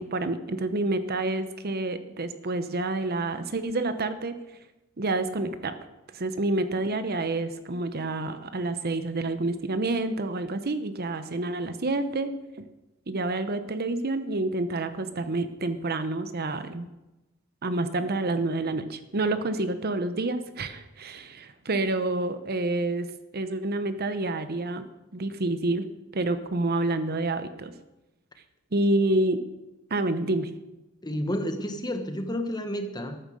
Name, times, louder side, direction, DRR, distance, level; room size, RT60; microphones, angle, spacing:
voice 1, 0.0-4.3 5.0-5.8 6.1-12.7 13.1-16.9 17.6-23.1 23.3-24.9 25.1-25.9 26.1-27.7 28.7-29.4 29.9-30.5, right 2 dB, 50° right, 10 dB, 0.9 m, -28 dB
voice 2, 31.0-33.2, equal, 20° left, 6 dB, 1.2 m, -30 dB
13.5 x 9.3 x 6.4 m, 0.99 s
head